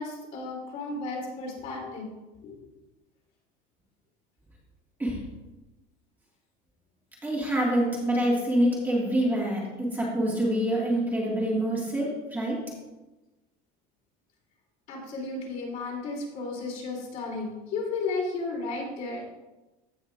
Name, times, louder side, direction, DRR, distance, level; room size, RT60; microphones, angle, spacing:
voice 1, 0.0-2.1 2.4-2.6 14.9-19.2, left 3 dB, 50° left, -3 dB, 3.0 m, -33 dB
voice 2, 7.2-12.6, right 1 dB, 10° right, -5 dB, 1.9 m, -26 dB
16.0 x 5.6 x 2.5 m, 1.1 s
cardioid pair, 150°, 18 cm